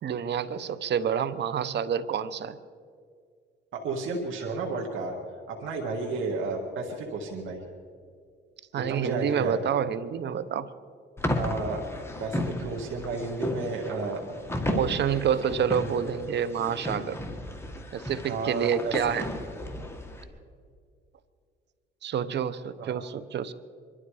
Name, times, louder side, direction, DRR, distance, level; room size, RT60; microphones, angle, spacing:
voice 1, 0.0-2.6 8.7-10.7 14.7-17.2 17.9-19.3 22.0-23.5, right 8 dB, 60° right, 15 dB, 0.9 m, -28 dB
voice 2, 3.7-5.1 5.5-7.6 8.9-9.6 11.3-11.8 12.2-14.3 18.3-19.0 22.8-23.0, right 3 dB, 80° right, 0 dB, 1.9 m, -32 dB
sound 1, 11.2-20.2, left 1 dB, 10° left, 2.0 m, -34 dB
24.0 x 12.5 x 4.9 m, 2.2 s
cardioid pair, 90°, 20 cm